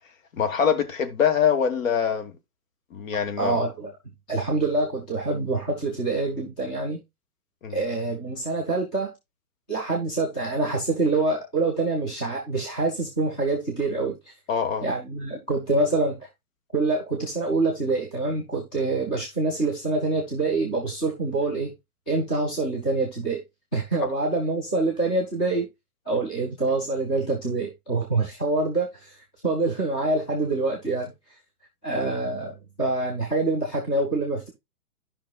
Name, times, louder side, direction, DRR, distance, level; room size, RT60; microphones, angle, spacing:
voice 1, 0.3-2.3 2.9-3.6 7.6-7.8 14.5-14.8, left 7 dB, 60° left, 1.4 m, -24 dB
voice 2, 3.4-3.9 4.3-7.0 7.7-9.1 9.7-14.2 14.8-16.2 16.7-21.7 22.1-23.4 23.7-25.7 26.1-29.2 29.4-31.1 31.8-34.5, right 3 dB, 5° left, 0.4 m, -26 dB
12.0 x 5.5 x 2.4 m
hypercardioid pair, 135°, 46 cm